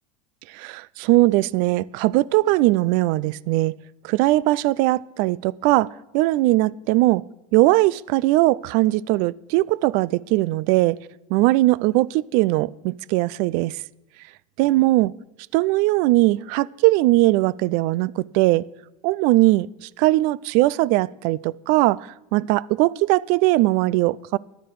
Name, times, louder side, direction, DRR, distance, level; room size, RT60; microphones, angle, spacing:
voice 1, 0.5-3.8 4.0-7.2 7.5-11.0 11.3-13.8 14.6-15.1 15.5-18.6 19.0-24.4, right 19 dB, 55° right, 0.4 m, -20 dB
15.0 x 11.5 x 4.7 m
supercardioid pair, 145°, 17 cm